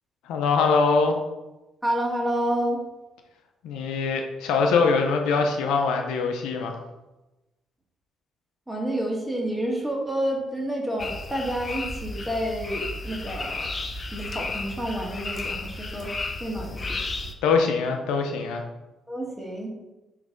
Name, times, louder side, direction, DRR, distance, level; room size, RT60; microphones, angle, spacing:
voice 1, 0.3-1.2 3.6-6.8 17.4-18.6, left 4 dB, 90° left, 3 dB, 0.7 m, -23 dB
voice 2, 1.8-2.8 8.7-13.7 14.1-16.1 16.4-17.0 19.1-19.7, right 1 dB, 5° right, -1 dB, 1.7 m, -29 dB
sound 1, 11.0-17.3, left 3 dB, 35° left, 0.7 m, -33 dB
5.9 x 3.2 x 5.2 m, 1.1 s
cardioid pair, 80°, 0 cm